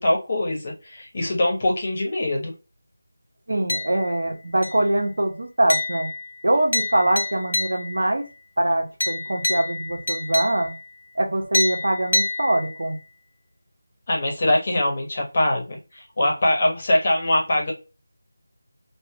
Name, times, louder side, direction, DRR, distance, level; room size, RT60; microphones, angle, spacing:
voice 1, 0.0-2.5 14.1-17.7, left 1 dB, 35° left, -1 dB, 1.1 m, -23 dB
voice 2, 3.5-6.1 6.4-8.2 8.6-10.7 11.1-13.0, right 1 dB, 70° right, 3 dB, 0.9 m, -23 dB
sound 1, 3.7-4.3 4.6-5.0 5.7-8.1 9.0-10.9 11.5-13.0, left 2 dB, 55° left, 0.7 m, -28 dB
3.3 x 2.5 x 2.2 m, 0.31 s
figure-of-eight pair, 170°, 0 cm